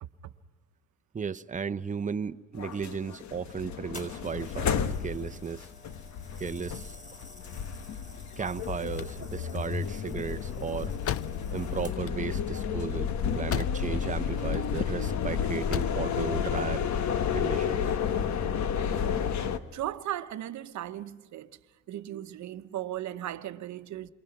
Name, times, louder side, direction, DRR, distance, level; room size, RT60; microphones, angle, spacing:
voice 1, 0.0-0.3 19.7-21.6 21.9-24.1, right 12 dB, 70° right, 1.0 m, -37 dB
voice 2, 1.1-5.7 6.4-7.0 8.4-10.9 11.5-16.8 17.3-17.9, right 6 dB, 25° right, 0.8 m, -35 dB
sound 1, 2.6-19.6, left 7 dB, 65° left, 1.3 m, -31 dB
sound 2, 3.9-12.3 13.0-13.2, left 2 dB, 25° left, 5.7 m, -51 dB
sound 3, 8.8-14.1 14.4-15.1 15.5-16.1, left 10 dB, 50° left, 0.6 m, -38 dB
28.5 x 23.5 x 5.9 m
cardioid pair, 90°, 30 cm